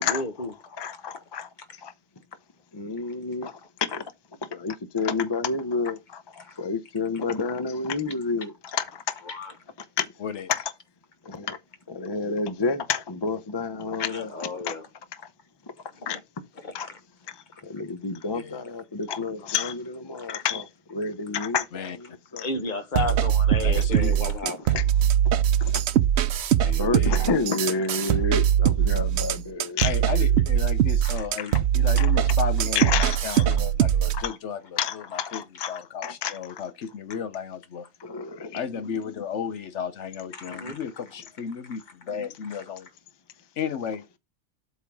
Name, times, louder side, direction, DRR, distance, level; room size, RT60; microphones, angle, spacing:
voice 1, 0.0-0.8 1.1-1.2 6.4-6.6 8.4-8.5 9.3-9.5 14.0-14.9 15.9-16.2 16.6-17.0 20.2-20.3 22.4-24.7 28.1-28.2 31.0-31.5 40.3-40.8 42.5-42.6, left 3 dB, 40° left, 1.3 m, -34 dB
voice 2, 0.8-1.5 1.8-1.9 2.7-3.5 3.8-4.0 4.5-9.1 10.0-10.1 10.5-10.7 11.3-11.6 11.9-14.8 16.1-16.2 16.7-16.9 17.6-22.1 22.3-22.5 24.4-24.8 25.6-25.7 26.8-29.9 31.4-31.6 32.0-32.1 32.7-33.4 34.1-34.4 34.8-36.6 38.0-38.6, left 5 dB, 25° left, 0.7 m, -29 dB
voice 3, 18.3-18.6 21.7-22.0 23.6-24.1 26.6-27.2 29.8-34.6 34.9-35.4 35.7-37.9 38.5-42.9 43.6-44.0, left 7 dB, 75° left, 1.1 m, -34 dB
sound 1, 22.9-34.2, right 10 dB, 70° right, 0.9 m, -22 dB
8.1 x 3.6 x 6.1 m
omnidirectional pair, 1.2 m